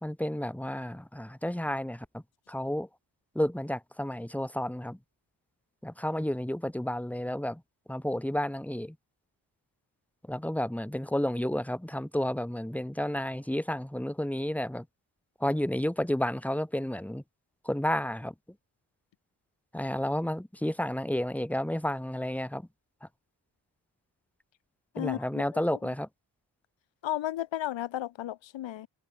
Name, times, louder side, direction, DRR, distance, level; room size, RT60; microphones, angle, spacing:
voice 1, 0.0-2.9 3.4-5.0 5.8-7.6 7.9-9.0 10.3-14.9 15.4-17.2 17.6-18.3 19.7-22.7 23.0-23.1 25.0-26.1, left 1 dB, 5° left, 3.6 m, -31 dB
voice 2, 24.9-25.6 27.0-28.9, left 13 dB, 85° left, 1.5 m, -34 dB
cardioid pair, 100°, 44 cm